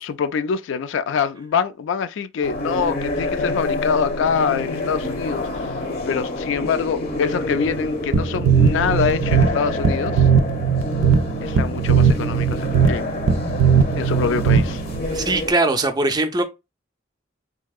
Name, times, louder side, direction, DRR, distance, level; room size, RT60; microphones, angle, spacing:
voice 1, 0.0-10.3 11.4-13.1 13.9-14.8, left 6 dB, 70° left, 0.3 m, -25 dB
sound 1, 2.4-15.5, left 2 dB, 55° left, 0.8 m, -28 dB
sound 2, 8.1-15.0, right 6 dB, 85° right, 0.4 m, -18 dB
voice 2, 15.1-16.4, right 2 dB, 20° right, 0.4 m, -20 dB
3.4 x 2.7 x 2.3 m
head